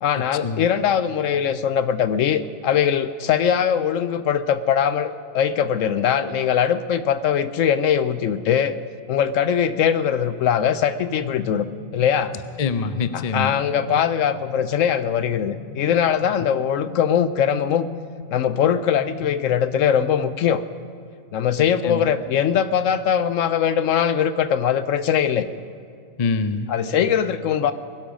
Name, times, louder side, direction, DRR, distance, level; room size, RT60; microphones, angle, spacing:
voice 1, 0.0-8.8 9.1-11.7 11.9-12.3 13.1-17.9 18.3-20.6 21.3-25.5 26.7-27.7, left 8 dB, 70° left, 13 dB, 0.9 m, -21 dB
sound 1, 10.6-20.9, left 4 dB, 15° left, 2.1 m, -40 dB
voice 2, 12.6-13.5 21.8-22.1 26.2-26.7, left 4 dB, 45° left, 11 dB, 0.5 m, -24 dB
21.5 x 12.0 x 5.2 m, 2.3 s
omnidirectional pair, 1.5 m